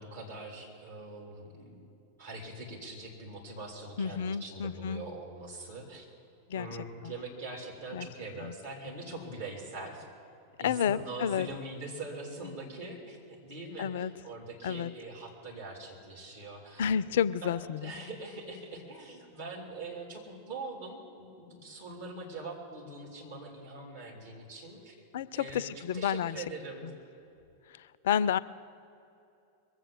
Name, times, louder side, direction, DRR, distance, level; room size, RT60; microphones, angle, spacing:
voice 1, 0.0-1.9 2.2-6.1 6.5-10.1 10.6-25.0 25.3-26.9, right 2 dB, 65° right, -1 dB, 3.6 m, -43 dB
voice 2, 4.0-5.0 6.5-6.7 7.9-8.1 8.4-8.5 10.6-11.5 13.8-14.1 14.6-14.9 16.8-17.9 25.1-26.4 28.0-28.4, left 8 dB, 55° left, 18 dB, 0.3 m, -30 dB
22.0 x 7.7 x 7.6 m, 2.7 s
figure-of-eight pair, 90°, 0 cm